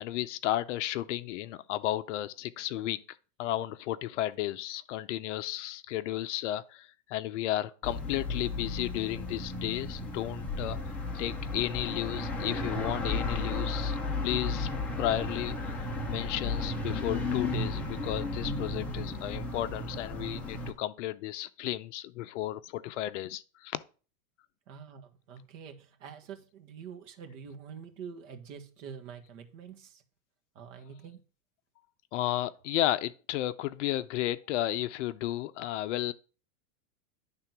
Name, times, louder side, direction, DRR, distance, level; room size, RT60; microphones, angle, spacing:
voice 1, 0.0-14.0 14.2-14.7 15.0-23.8 32.1-36.1, left 14 dB, 50° left, 0.6 m, -33 dB
sound 1, 7.8-20.7, left 2 dB, 5° left, 0.5 m, -34 dB
voice 2, 24.7-30.0 30.5-31.2, right 7 dB, 55° right, 1.6 m, -46 dB
10.5 x 3.8 x 5.9 m
supercardioid pair, 165°, 46 cm